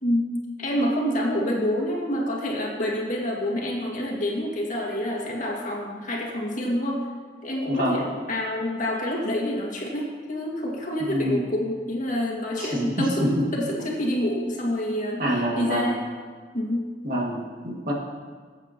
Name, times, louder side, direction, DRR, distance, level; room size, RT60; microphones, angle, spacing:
voice 1, 0.0-7.1 7.4-16.0 16.5-16.9, equal, 45° left, -2 dB, 2.0 m, -27 dB
voice 2, 7.7-8.0 11.0-11.4 12.6-13.3 15.2-15.9 17.0-17.9, equal, 50° right, -3 dB, 2.1 m, -26 dB
18.5 x 8.2 x 2.9 m, 1.5 s
head